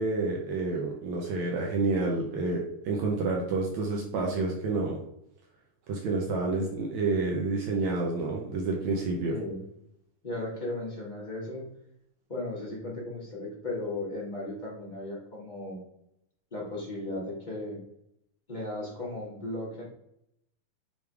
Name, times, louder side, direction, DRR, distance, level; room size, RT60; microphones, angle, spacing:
voice 1, 0.0-5.0 5.9-9.4, right 3 dB, 70° right, -1 dB, 2.0 m, -29 dB
voice 2, 9.2-9.6 10.2-11.7 12.3-15.8 16.5-17.8 18.5-19.8, left 2 dB, 25° left, -4 dB, 0.9 m, -36 dB
7.0 x 3.5 x 4.7 m, 0.77 s
omnidirectional pair, 3.7 m